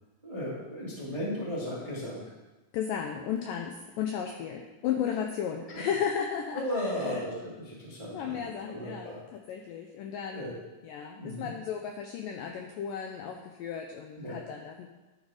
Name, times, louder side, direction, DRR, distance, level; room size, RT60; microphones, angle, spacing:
voice 1, 0.2-2.2 5.7-5.8 6.5-9.2 10.3-10.5 11.2-11.5 14.2-14.4, left 1 dB, 20° right, -6 dB, 0.8 m, -35 dB
voice 2, 2.7-7.2 8.1-9.2 9.5-10.6 10.8-14.9, left 8 dB, 80° left, 3 dB, 1.9 m, -34 dB
11.0 x 6.6 x 4.8 m, 1.2 s
omnidirectional pair, 4.6 m